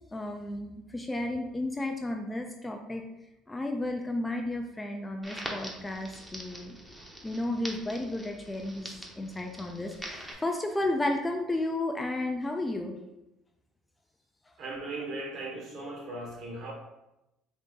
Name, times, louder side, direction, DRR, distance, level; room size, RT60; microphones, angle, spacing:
voice 1, 0.1-3.0 3.5-6.8 7.2-13.0, left 1 dB, 10° left, 0.3 m, -33 dB
Crackle, 5.2-10.3, right 1 dB, 10° right, 0.7 m, -43 dB
voice 2, 14.6-16.7, right 2 dB, 50° right, 1.1 m, -38 dB
4.0 x 2.6 x 3.6 m
cardioid pair, 135°, 0 cm